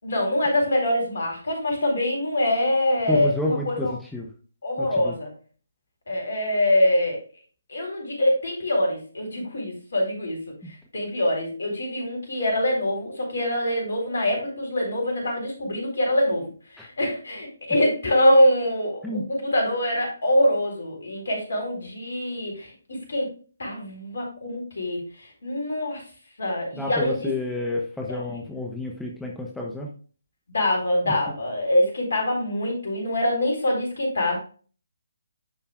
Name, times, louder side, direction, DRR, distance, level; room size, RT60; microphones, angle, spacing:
voice 1, 0.0-3.9 4.6-5.3 6.1-7.2 7.7-10.4 10.7-23.3 23.6-26.0 26.4-27.3 28.1-28.4 30.5-34.4, left 1 dB, 60° left, 0 dB, 4.1 m, -24 dB
voice 2, 3.1-4.3 4.8-5.1 16.8-16.9 19.0-19.2 26.7-29.9, left 1 dB, 5° left, -1 dB, 0.9 m, -30 dB
10.5 x 5.5 x 2.4 m, 0.39 s
figure-of-eight pair, 145°, 0 cm